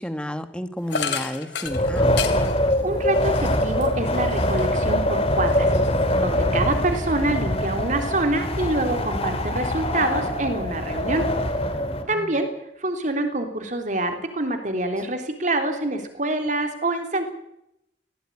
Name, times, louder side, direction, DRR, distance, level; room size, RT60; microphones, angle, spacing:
voice 1, 0.0-2.1 6.1-6.6 11.7-12.4, equal, 5° left, 10 dB, 1.4 m, -33 dB
sound 1, 0.9-4.9 5.3-6.4, left 6 dB, 70° left, 2.6 m, -33 dB
Wind, 1.6-12.0, left 1 dB, 35° left, 2.8 m, -23 dB
voice 2, 2.8-5.7 6.2-11.3 12.1-12.5 12.8-17.3, right 2 dB, 45° right, 6 dB, 3.4 m, -26 dB
19.5 x 17.5 x 9.8 m, 0.83 s
head